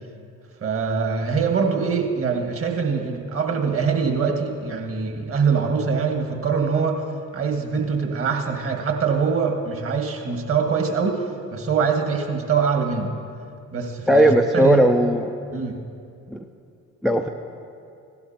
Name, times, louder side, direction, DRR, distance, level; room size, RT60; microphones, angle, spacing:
voice 1, 0.6-7.0 7.3-11.2 11.5-13.2 13.7-14.9 15.5-15.8, right 5 dB, 30° right, 3 dB, 1.7 m, -23 dB
voice 2, 14.1-15.3 16.3-16.4 17.0-17.3, equal, ahead, 4 dB, 0.5 m, -17 dB
16.5 x 12.0 x 2.9 m, 2.5 s
figure-of-eight pair, 55°, 42 cm